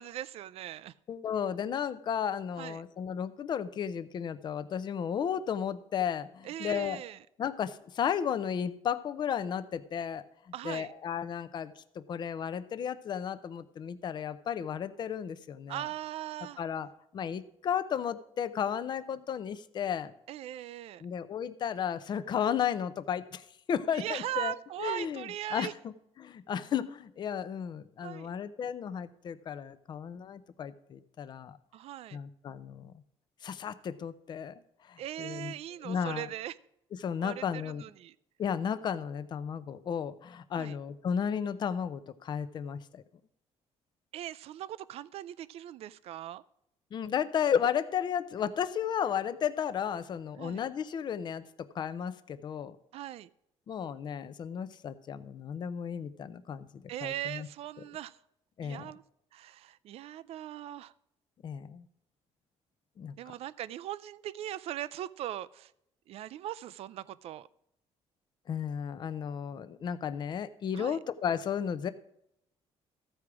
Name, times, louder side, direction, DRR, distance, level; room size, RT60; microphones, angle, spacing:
voice 1, 0.0-0.9 2.6-2.8 6.4-7.2 10.5-10.9 15.7-16.6 20.3-21.0 23.9-25.7 28.0-28.3 31.7-32.2 35.0-36.6 37.2-38.1 40.5-40.8 44.1-46.4 50.4-50.6 52.9-53.3 56.9-58.2 58.6-59.0 59.3-60.9 63.2-65.7 66.1-67.5 70.7-71.0, right 12 dB, 60° right, 17 dB, 0.4 m, -39 dB
voice 2, 1.1-7.0 7.4-10.2 10.6-15.8 16.6-16.9 17.1-20.1 21.0-31.6 32.1-32.9 33.4-34.6 34.9-35.5 35.8-36.3 37.0-37.8 38.4-43.0 46.9-52.8 53.7-57.5 58.6-58.9 61.4-61.9 63.0-63.1 68.5-71.9, left 8 dB, 40° left, 13 dB, 0.6 m, -34 dB
14.5 x 4.8 x 5.9 m, 0.76 s
cardioid pair, 150°, 12 cm